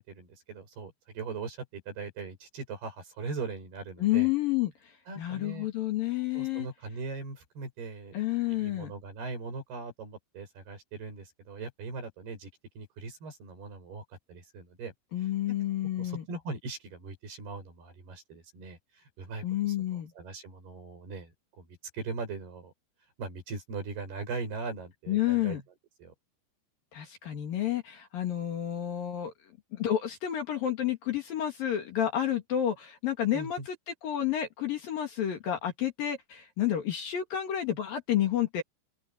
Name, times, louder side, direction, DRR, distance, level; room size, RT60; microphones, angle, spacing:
voice 1, 0.0-4.3 5.1-5.7 6.3-8.1 8.5-12.5 12.8-14.9 15.2-15.6 16.0-22.7 23.2-25.6 26.0-26.1 33.3-33.7, right 4 dB, 60° right, 9.1 m, -40 dB
voice 2, 4.0-4.7 5.2-6.7 8.1-8.9 15.1-16.2 19.4-20.1 25.1-25.6 26.9-29.3 29.7-33.8 34.0-38.6, left 12 dB, 55° left, 3.5 m, -30 dB
open air
omnidirectional pair, 5.2 m